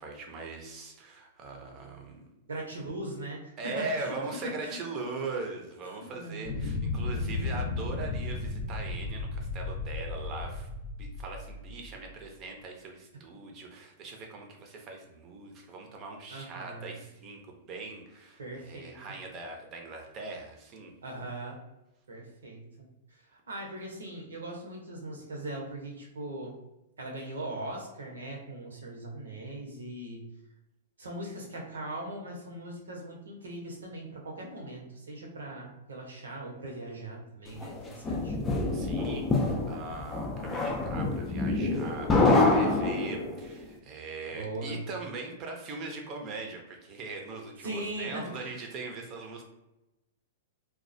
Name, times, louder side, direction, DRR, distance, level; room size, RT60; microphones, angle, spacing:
voice 1, 0.0-2.2 3.6-10.7 11.0-20.9 38.7-49.4, right 3 dB, 35° right, 2 dB, 0.6 m, -40 dB
voice 2, 2.5-4.2 4.6-4.8 5.9-6.5 16.3-17.0 18.4-19.2 21.0-21.6 22.1-26.5 27.0-30.2 31.0-38.4 44.3-44.8 47.6-48.6, right 1 dB, 80° right, 0 dB, 0.7 m, -40 dB
sound 1, 6.4-12.2, left 3 dB, 60° left, 0.6 m, -34 dB
sound 2, 37.6-43.5, left 2 dB, 20° left, 0.4 m, -26 dB
2.3 x 2.1 x 2.5 m, 0.95 s
hypercardioid pair, 115°, 0 cm